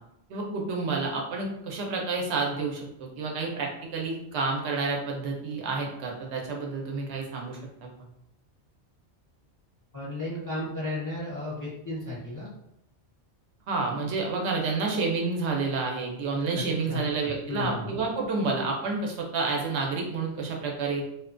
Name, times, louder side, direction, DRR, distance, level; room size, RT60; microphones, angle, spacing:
voice 1, 0.3-7.6 13.7-21.0, right 3 dB, 70° right, 0 dB, 0.8 m, -29 dB
voice 2, 9.9-12.5 16.5-17.0 17.5-17.9, left 2 dB, 30° left, -7 dB, 0.4 m, -34 dB
2.7 x 2.1 x 2.4 m, 0.78 s
omnidirectional pair, 1.2 m